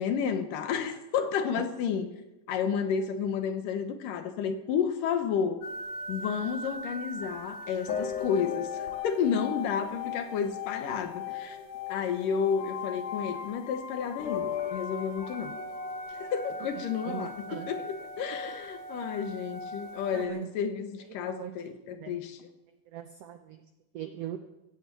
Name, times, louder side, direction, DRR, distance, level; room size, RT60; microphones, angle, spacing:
voice 1, 0.0-2.2 2.5-5.6 6.1-11.6 11.9-15.5 16.2-22.5, left 7 dB, 85° left, 7 dB, 2.8 m, -31 dB
sound 1, 5.6-20.3, left 5 dB, 60° left, 2.2 m, -38 dB
voice 2, 17.1-17.7 20.1-20.5 21.3-21.5 21.9-22.2 22.9-23.6 23.9-24.4, right 11 dB, 85° right, 7 dB, 1.4 m, -39 dB
16.0 x 8.3 x 7.6 m, 0.96 s
omnidirectional pair, 3.8 m